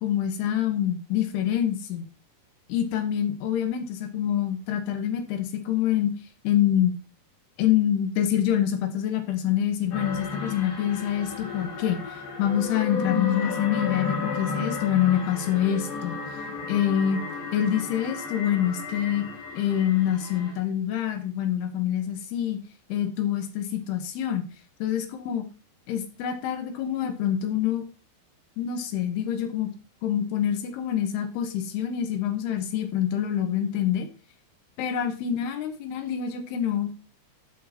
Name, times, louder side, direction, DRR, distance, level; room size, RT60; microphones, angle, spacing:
voice 1, 0.0-2.1 2.7-3.9 4.1-6.1 6.4-7.0 7.6-12.0 12.4-16.2 16.7-17.2 17.5-19.2 19.6-22.6 22.9-24.5 24.8-25.5 25.9-27.9 28.6-29.7 30.0-34.1 34.8-37.0, left 10 dB, 90° left, 7 dB, 3.2 m, -26 dB
sound 1, 9.9-20.5, left 4 dB, 70° left, 3.3 m, -33 dB
11.5 x 6.5 x 2.9 m, 0.34 s
omnidirectional pair, 4.5 m